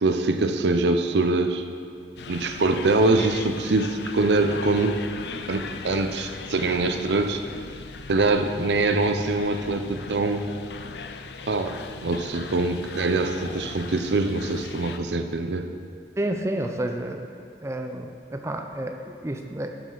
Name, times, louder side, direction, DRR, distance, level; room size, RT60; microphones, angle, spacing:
voice 1, 0.0-1.6 2.3-5.0 5.5-7.4 8.1-10.5 11.5-11.8 12.0-15.7, right 2 dB, 80° right, 7 dB, 0.6 m, -23 dB
sound 1, 2.2-15.0, left 5 dB, 70° left, 0.5 m, -39 dB
voice 2, 16.2-17.3 17.6-19.8, right 1 dB, 15° right, 5 dB, 0.5 m, -30 dB
12.0 x 7.9 x 4.0 m, 2.5 s
head